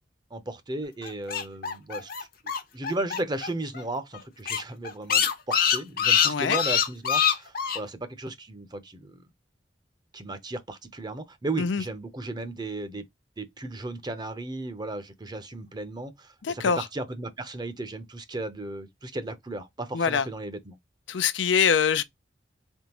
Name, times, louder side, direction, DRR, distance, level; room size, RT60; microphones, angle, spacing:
voice 1, 0.3-2.3 2.7-9.3 10.1-13.0 13.4-20.8, right 2 dB, 25° right, 0.7 m, -35 dB
sound 1, 1.0-3.5 3.7-3.8 4.1-4.2 4.4-7.8, left 8 dB, 55° left, 0.8 m, -24 dB
voice 2, 6.2-6.6 11.6-11.8 16.4-16.9 19.9-20.3 21.1-22.0, left 6 dB, 90° left, 0.5 m, -24 dB
3.6 x 3.1 x 2.9 m
head